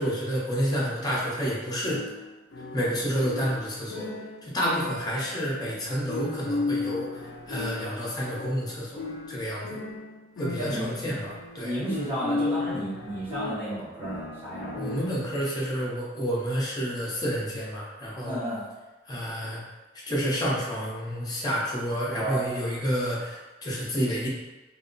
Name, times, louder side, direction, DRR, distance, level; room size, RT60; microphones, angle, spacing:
voice 1, 0.0-2.0 2.7-4.1 4.4-7.1 7.5-9.7 10.4-11.7 14.7-18.4 19.1-19.6 20.1-24.3, equal, 20° left, -5 dB, 0.7 m, -29 dB
sound 1, 1.8-15.4, left 3 dB, 80° left, 0.3 m, -35 dB
voice 2, 10.6-11.1 11.6-14.8 18.2-18.6 22.1-22.4, right 1 dB, 35° right, -10 dB, 0.9 m, -32 dB
2.3 x 2.0 x 3.8 m, 1.1 s
head